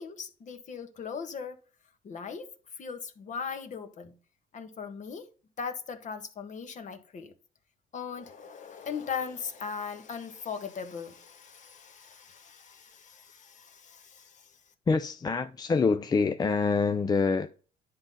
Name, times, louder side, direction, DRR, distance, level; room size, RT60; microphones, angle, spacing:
voice 1, 0.0-1.6 2.0-2.5 2.8-4.1 4.5-5.3 5.6-7.3 7.9-14.5, left 6 dB, 45° left, 1.4 m, -39 dB
voice 2, 14.9-17.6, left 4 dB, 25° left, 0.5 m, -26 dB
10.5 x 3.9 x 5.7 m
cardioid pair, 110°, 17 cm